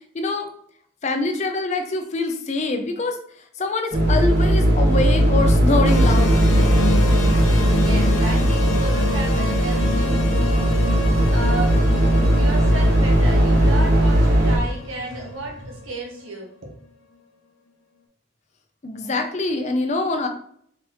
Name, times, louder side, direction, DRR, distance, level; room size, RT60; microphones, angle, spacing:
voice 1, 0.1-0.5 1.0-3.2 3.6-6.7 18.8-20.3, left 3 dB, 35° left, 5 dB, 0.5 m, -24 dB
sound 1, 3.9-14.6, right 1 dB, 50° right, 1.2 m, -18 dB
sound 2, 5.1-15.8, equal, 25° right, 0.8 m, -38 dB
sound 3, 5.8-16.3, left 3 dB, 75° left, 0.8 m, -29 dB
voice 2, 7.4-10.7 11.3-11.9 12.3-16.7, right 2 dB, 85° right, -1 dB, 1.4 m, -33 dB
4.1 x 3.2 x 3.0 m, 0.64 s
head